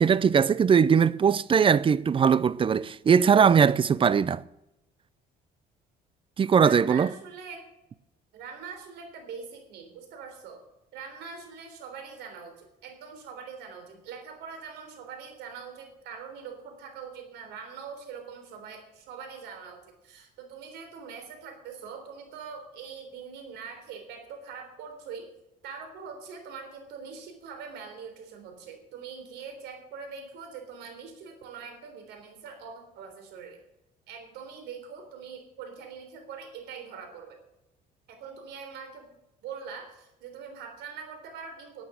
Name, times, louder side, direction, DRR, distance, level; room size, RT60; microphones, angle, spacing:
voice 1, 0.0-4.4 6.4-7.1, right 7 dB, 30° right, 0.5 m, -20 dB
voice 2, 6.5-7.7 8.3-10.6 10.9-25.3 25.6-33.6 34.1-37.4 38.1-39.1 39.4-41.9, right 6 dB, 85° right, 3.7 m, -43 dB
11.5 x 9.1 x 7.9 m
cardioid pair, 110°, 17 cm